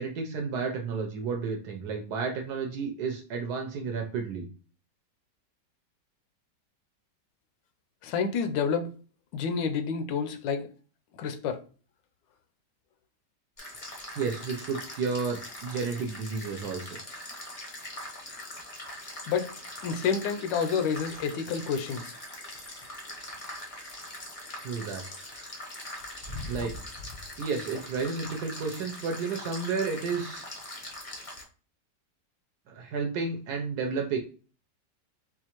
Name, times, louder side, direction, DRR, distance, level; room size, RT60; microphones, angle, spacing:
voice 1, 0.0-4.5 14.2-17.0 24.6-25.5 26.5-26.7 27.4-30.4 32.7-34.2, right 5 dB, 70° right, 1.1 m, -32 dB
voice 2, 8.0-8.9 9.3-10.7 11.1-11.6 19.3-19.5 19.8-22.1, left 6 dB, 85° left, 1.2 m, -29 dB
sound 1, 13.6-31.4, left 1 dB, 70° left, 0.3 m, -42 dB
4.4 x 2.4 x 2.9 m
omnidirectional pair, 1.9 m